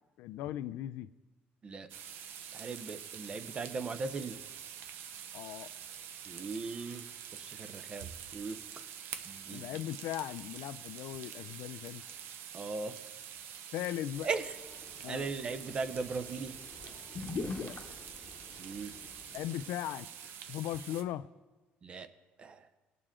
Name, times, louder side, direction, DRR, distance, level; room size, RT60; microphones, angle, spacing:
voice 1, 0.2-1.1 5.3-5.7 9.5-12.0 13.7-14.3 15.0-15.3 17.6-18.0 19.3-20.1 20.5-21.3, left 13 dB, 80° left, 0.4 m, -38 dB
sound 1, 1.9-21.0, right 9 dB, 70° right, 0.7 m, -46 dB
voice 2, 2.5-4.4 6.3-7.0 7.3-8.6 9.3-9.6 12.5-12.9 14.2-14.4 15.1-16.5 18.6-18.9 21.8-22.1 22.4-22.6, right 4 dB, 25° right, 0.6 m, -38 dB
sound 2, 14.1-19.6, left 4 dB, 40° left, 1.0 m, -45 dB
19.0 x 6.8 x 3.7 m
cardioid pair, 170°, 4 cm